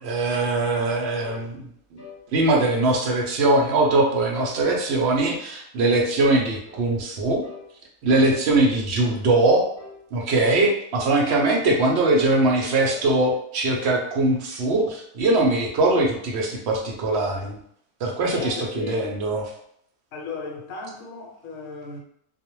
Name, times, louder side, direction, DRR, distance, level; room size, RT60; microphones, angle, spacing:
voice 1, 0.0-2.0 2.3-7.4 8.0-9.7 10.1-17.6 18.0-19.4, right 2 dB, 65° right, 0 dB, 0.7 m, -21 dB
sound 1, 1.2-1.4 2.0-2.2 2.8-3.0 3.5-3.8 4.3-4.6 5.1-5.3 5.9-6.1 6.6-6.9 7.4-7.7 8.2-8.5 9.0-9.2 9.8-10.0 10.5-10.8 11.3-11.6 12.1-12.4 12.7-13.1, left 4 dB, 15° left, 1.2 m, -44 dB
voice 2, 18.3-19.2 20.1-22.0, left 4 dB, 75° left, 1 dB, 1.0 m, -35 dB
2.3 x 2.1 x 3.0 m, 0.69 s
omnidirectional pair, 1.4 m